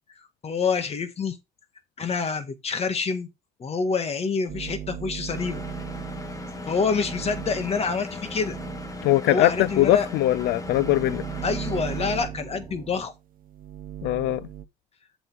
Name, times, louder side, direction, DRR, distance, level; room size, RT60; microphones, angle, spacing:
voice 1, 0.4-1.4 2.0-3.3 3.6-5.6 6.7-8.6 9.3-10.1 11.4-13.1, left 5 dB, 35° left, 1.8 m, -27 dB
sound 1, 4.5-14.6, right 11 dB, 55° right, 1.0 m, -38 dB
Engine, 5.3-12.2, left 2 dB, 20° left, 1.7 m, -38 dB
sound 2, 6.3-13.1, right 4 dB, 20° right, 2.7 m, -48 dB
voice 2, 9.0-11.2 14.0-14.5, left 15 dB, 80° left, 0.5 m, -21 dB
8.1 x 7.0 x 3.5 m
cardioid pair, 110°, 17 cm